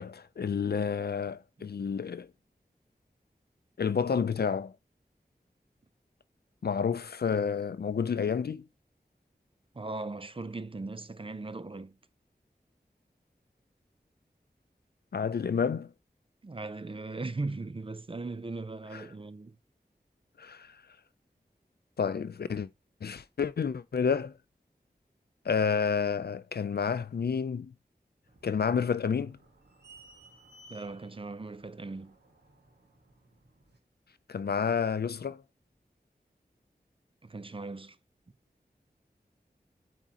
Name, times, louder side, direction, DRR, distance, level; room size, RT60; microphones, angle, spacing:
voice 1, 0.0-2.3 3.8-4.7 6.6-8.7 15.1-15.9 18.9-19.1 20.4-20.8 22.0-22.7 23.0-24.3 25.4-27.7 28.4-29.4 34.3-35.4, left 6 dB, 70° left, 0.4 m, -30 dB
voice 2, 9.7-12.0 16.4-19.6 30.7-32.2 37.2-38.0, right 3 dB, 30° right, 0.4 m, -38 dB
sound 1, 28.2-33.8, right 1 dB, 90° right, 1.5 m, -58 dB
8.9 x 3.7 x 2.8 m
wide cardioid pair, 45°, 17 cm